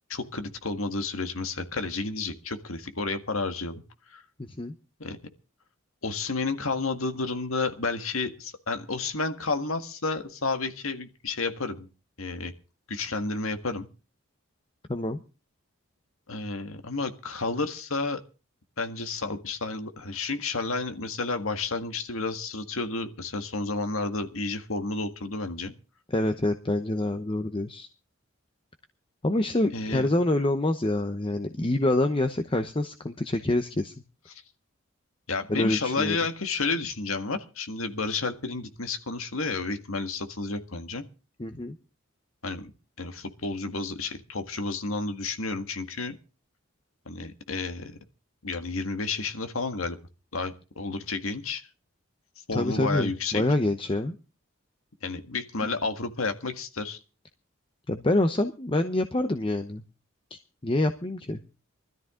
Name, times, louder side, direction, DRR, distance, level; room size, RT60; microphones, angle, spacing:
voice 1, 0.1-3.8 4.1-4.2 5.0-5.2 6.0-11.9 12.2-12.5 12.9-13.9 16.3-18.2 18.8-25.7 29.7-30.1 35.3-41.0 42.4-42.7 43.0-46.1 47.0-48.0 48.4-50.0 50.3-51.6 52.5-53.4 55.0-57.0, left 3 dB, 85° left, 7 dB, 1.8 m, -31 dB
voice 2, 4.4-4.7 14.9-15.2 26.1-27.9 29.2-33.9 35.5-36.2 41.4-41.8 52.5-54.2 57.9-59.8 60.6-61.4, left 1 dB, 25° left, 8 dB, 0.8 m, -26 dB
20.5 x 13.5 x 3.8 m, 0.34 s
head